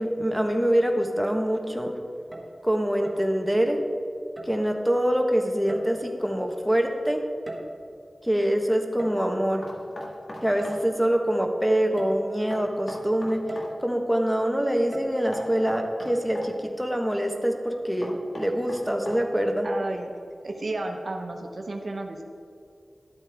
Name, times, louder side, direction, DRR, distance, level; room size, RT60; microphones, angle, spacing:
voice 1, 0.0-1.9 2.6-3.8 4.4-7.2 8.2-9.7 10.4-13.4 13.8-19.7, equal, ahead, 2 dB, 1.1 m, -25 dB
sound 1, 2.2-2.6 3.0-3.3 4.4-4.7 5.7-6.2 7.2-8.0 9.0-9.3 10.6-10.8 11.3-11.4 12.0-12.3 13.5-13.8 14.9-15.1, right 1 dB, 35° right, 1.4 m, -40 dB
Knock, 9.6-10.8 12.5-13.7 15.3-16.5 18.0-19.4, left 1 dB, 70° left, 1.8 m, -39 dB
voice 2, 19.6-20.1 20.4-22.2, right 2 dB, 70° right, 3 dB, 0.9 m, -32 dB
12.0 x 8.1 x 3.5 m, 2.4 s
cardioid pair, 45°, 0 cm